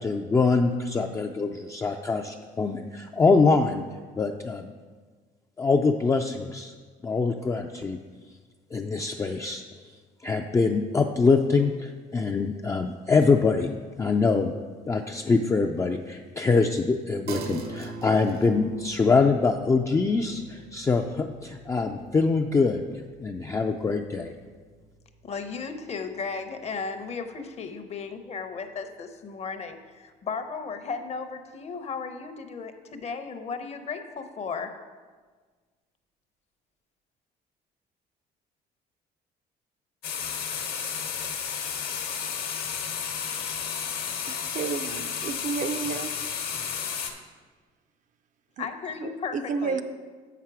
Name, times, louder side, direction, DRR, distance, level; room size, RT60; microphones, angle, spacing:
voice 1, 0.0-3.8 4.2-4.7 5.6-6.7 7.0-8.0 8.7-9.6 10.2-13.7 14.0-14.5 14.9-22.8 23.2-24.3, left 4 dB, 20° left, 3 dB, 0.3 m, -24 dB
sound 1, 17.3-27.0, right 4 dB, 70° right, 0.8 m, -43 dB
voice 2, 25.2-34.7 48.6-49.8, left 5 dB, 40° left, 8 dB, 0.7 m, -35 dB
sound 2, 40.0-47.1, left 7 dB, 65° left, 1.0 m, -32 dB
voice 3, 44.3-46.1 48.6-48.7 49.0-49.8, right 5 dB, 50° right, 9 dB, 0.5 m, -31 dB
7.2 x 5.8 x 4.8 m, 1.5 s
cardioid pair, 110°, 17 cm